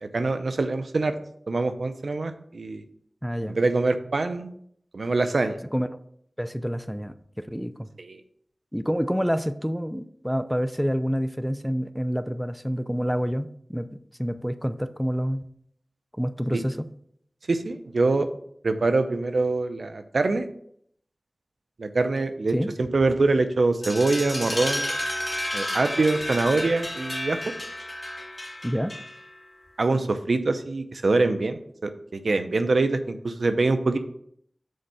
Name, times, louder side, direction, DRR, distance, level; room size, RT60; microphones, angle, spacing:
voice 1, 0.0-1.2 1.5-2.8 3.5-4.5 4.9-5.6 8.0-8.2 16.5-16.6 17.5-18.3 18.6-20.5 21.8-24.9 25.5-27.4 29.8-34.0, right 3 dB, 80° right, 9 dB, 0.6 m, -24 dB
voice 2, 3.2-3.6 5.7-6.0 6.4-7.1 7.5-7.9 8.7-13.9 14.2-15.4 16.2-16.9 22.5-22.7 28.6-28.9, equal, ahead, 11 dB, 0.5 m, -27 dB
sound 1, 23.8-29.4, left 1 dB, 35° left, 2.2 m, -31 dB
6.5 x 4.4 x 5.5 m, 0.68 s
wide cardioid pair, 45°, 0 cm